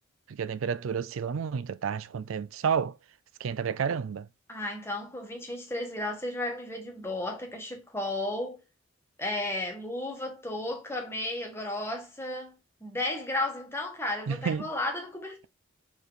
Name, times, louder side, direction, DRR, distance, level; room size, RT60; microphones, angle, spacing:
voice 1, 0.3-3.0 3.4-4.3 14.3-14.7, right 6 dB, 75° right, 0.4 m, -30 dB
voice 2, 4.5-8.6 9.2-12.5 12.8-15.5, left 1 dB, 10° left, 1.4 m, -33 dB
4.5 x 4.4 x 5.0 m
head